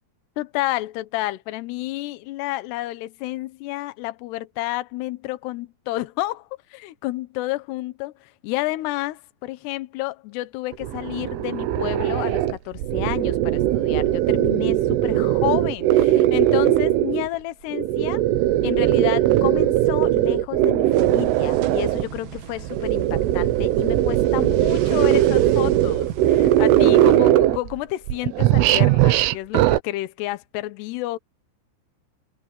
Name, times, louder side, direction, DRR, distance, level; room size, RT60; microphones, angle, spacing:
voice 1, 0.4-18.2 18.6-31.2, left 18 dB, 70° left, 2.7 m, -30 dB
sound 1, 10.7-17.3 17.7-22.1 22.6-27.8 28.1-29.8, right 14 dB, 80° right, 3.6 m, -19 dB
sound 2, 20.9-27.2, right 9 dB, 65° right, 3.7 m, -35 dB
omnidirectional pair, 5.8 m